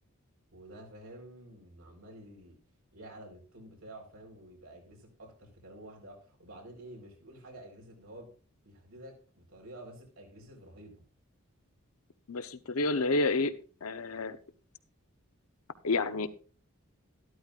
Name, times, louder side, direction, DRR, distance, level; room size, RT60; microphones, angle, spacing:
voice 1, 0.5-2.6 2.9-8.3 8.6-11.0, right 1 dB, 75° right, 1 dB, 4.1 m, -50 dB
voice 2, 12.3-13.5 13.8-14.4 15.8-16.3, left 3 dB, 80° left, 11 dB, 0.8 m, -29 dB
12.5 x 12.5 x 2.4 m, 0.39 s
head